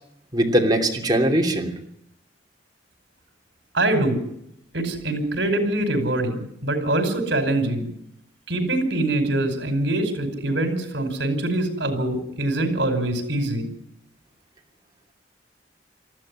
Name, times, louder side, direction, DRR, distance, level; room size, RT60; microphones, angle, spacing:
voice 1, 0.3-1.7, right 1 dB, 20° right, 2 dB, 3.0 m, -20 dB
voice 2, 3.7-4.2 4.7-7.9 8.5-13.7, right 1 dB, 70° right, 8 dB, 5.3 m, -24 dB
19.5 x 14.5 x 9.9 m, 0.75 s
head